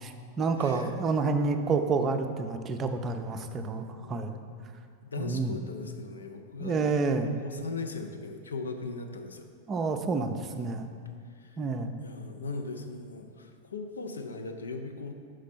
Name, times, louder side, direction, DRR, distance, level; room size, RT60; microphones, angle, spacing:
voice 1, 0.0-4.4 5.2-5.6 6.6-7.3 9.7-10.9 11.6-11.9, right 4 dB, 25° right, 6 dB, 0.4 m, -29 dB
voice 2, 0.6-0.9 4.0-4.4 5.0-6.9 7.2-9.5 11.4-11.6 12.0-15.2, left 3 dB, 70° left, 5 dB, 0.5 m, -39 dB
6.2 x 5.1 x 4.1 m, 2.2 s
figure-of-eight pair, 90°, 0 cm